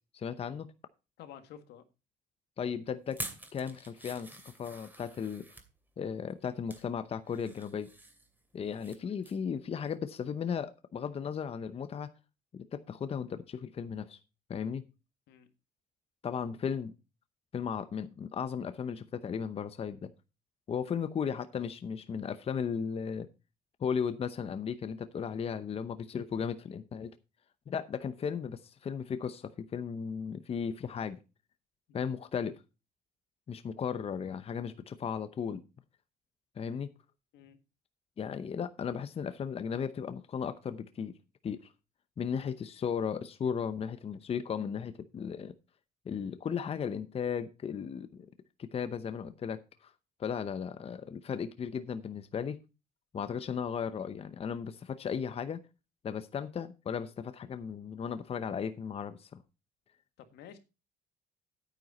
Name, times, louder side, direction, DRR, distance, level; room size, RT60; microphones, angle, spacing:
voice 1, 0.1-0.7 2.6-3.2 3.5-5.5 6.0-7.9 8.5-12.1 12.5-14.2 14.5-14.8 16.2-16.9 17.5-20.1 20.7-23.3 23.8-27.2 27.7-31.2 31.9-32.6 33.5-35.6 36.6-36.9 38.2-41.1 41.4-41.6 42.2-45.5 46.1-48.3 48.6-49.9 50.2-52.6 53.1-55.6 56.0-59.4, left 7 dB, 35° left, 0.8 m, -36 dB
voice 2, 1.2-1.8 15.3-15.5 20.8-20.9 31.9-32.1 37.3-37.6 60.2-60.6, left 9 dB, 80° left, 1.8 m, -51 dB
sound 1, 3.1-5.7 6.3-6.9 7.3-9.0 9.2-9.5 9.9-10.0, right 1 dB, 10° right, 2.5 m, -46 dB
9.4 x 9.3 x 4.2 m
cardioid pair, 110°, 17 cm